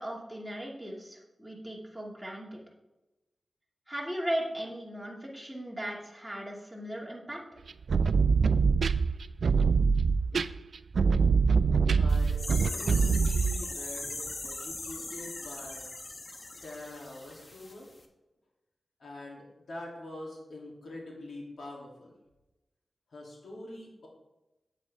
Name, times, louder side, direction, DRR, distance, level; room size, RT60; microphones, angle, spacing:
voice 1, 0.0-2.6 3.9-7.4, equal, 5° right, -3 dB, 2.4 m, -37 dB
sound 1, 7.7-13.6, right 5 dB, 80° right, 0.3 m, -24 dB
voice 2, 12.0-15.9 16.6-17.9 19.0-22.1 23.1-24.1, left 2 dB, 80° left, -3 dB, 3.0 m, -44 dB
sound 2, 12.1-17.7 18.0-18.1, left 2 dB, 45° left, 1.2 m, -40 dB
9.0 x 8.3 x 3.6 m, 1.0 s
wide cardioid pair, 70°, 0 cm